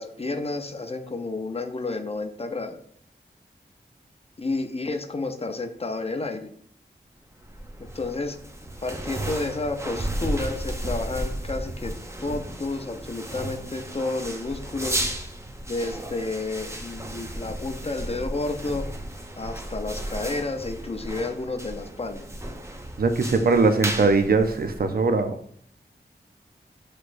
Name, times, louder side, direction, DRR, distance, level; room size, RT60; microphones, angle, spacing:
voice 1, 0.0-2.8 4.4-6.5 7.9-8.4 8.8-11.9 12.2-15.1 15.6-18.9 19.4-22.3, left 3 dB, 35° left, 6 dB, 0.5 m, -31 dB
sound 1, 7.4-25.2, right 1 dB, 15° right, 0.6 m, -34 dB
voice 2, 23.0-25.4, right 3 dB, 55° right, 7 dB, 0.5 m, -21 dB
5.9 x 3.2 x 2.5 m, 0.62 s
cardioid pair, 45°, 18 cm